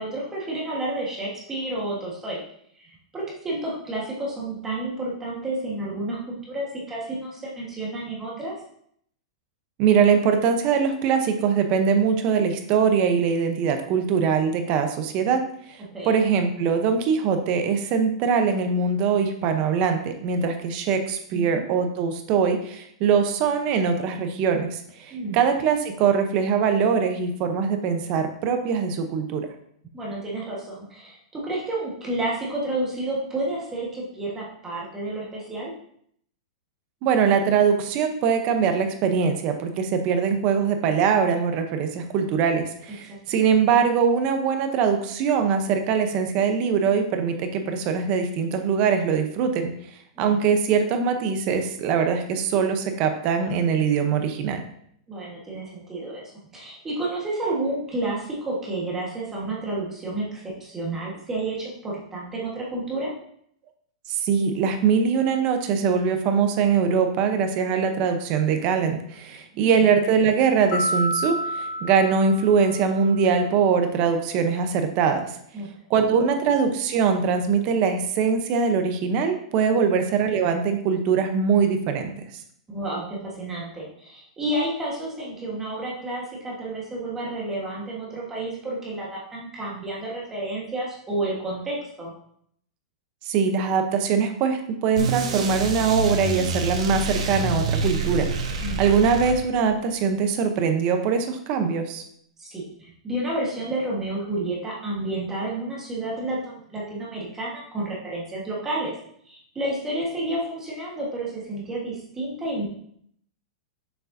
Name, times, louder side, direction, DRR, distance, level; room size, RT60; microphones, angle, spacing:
voice 1, 0.0-2.4 2.8-8.5 15.9-16.1 21.3-21.7 25.1-25.4 29.9-35.7 43.1-43.2 50.2-50.3 55.1-63.1 69.5-69.8 75.5-76.2 79.7-80.0 82.7-92.1 98.6-98.8 102.4-108.9 109.2-112.6, right 1 dB, 10° right, -5 dB, 1.4 m, -30 dB
voice 2, 9.8-15.4 16.0-29.5 37.0-49.7 50.2-54.6 64.1-75.3 75.9-82.1 93.3-102.0, right 6 dB, 30° right, 6 dB, 0.7 m, -22 dB
sound 1, 70.7-73.2, equal, 40° left, 3.0 m, -29 dB
sound 2, 95.0-99.8, right 3 dB, 80° right, 1.4 m, -27 dB
6.6 x 6.6 x 2.7 m, 0.67 s
supercardioid pair, 170°, 4 cm